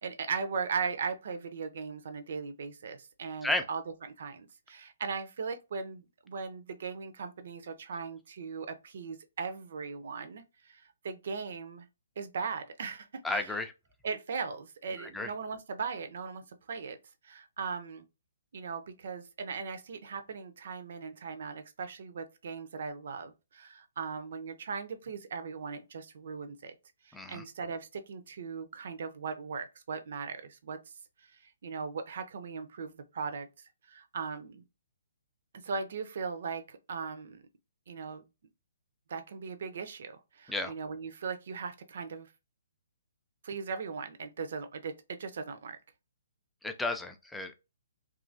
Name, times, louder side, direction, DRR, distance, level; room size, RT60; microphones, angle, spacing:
voice 1, 0.0-11.9 12.2-13.5 14.0-17.0 17.2-18.0 18.5-26.7 27.0-30.8 31.2-33.5 33.8-34.6 35.5-37.4 37.9-38.2 39.1-42.3 43.4-45.8, right 5 dB, 55° right, 0.5 m, -38 dB
voice 2, 13.2-13.7 15.0-15.3 27.1-27.4 40.5-40.7 46.6-47.5, left 2 dB, 5° left, 0.4 m, -33 dB
2.9 x 2.4 x 2.6 m
figure-of-eight pair, 130°, 0 cm